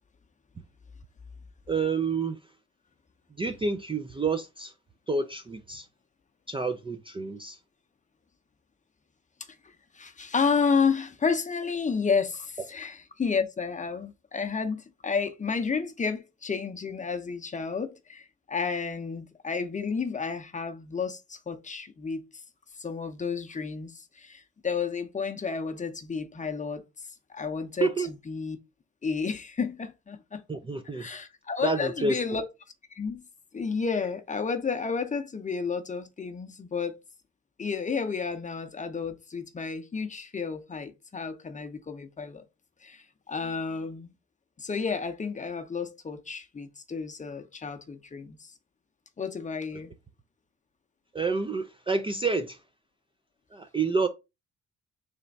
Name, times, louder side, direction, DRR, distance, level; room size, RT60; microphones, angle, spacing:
voice 1, 1.7-2.4 3.4-4.7 5.1-5.9 6.5-7.6 27.8-28.1 30.5-31.1 31.6-32.2 51.1-52.6 53.5-54.1, right 4 dB, 20° right, 0.4 m, -28 dB
voice 2, 9.6-22.2 22.8-26.8 27.3-28.6 29.0-30.4 30.9-32.4 32.9-33.2 33.5-37.0 37.6-42.4 42.8-44.1 44.6-48.5 49.2-49.9, left 5 dB, 25° left, 0.7 m, -31 dB
3.4 x 3.1 x 3.9 m
cardioid pair, 90°, 30 cm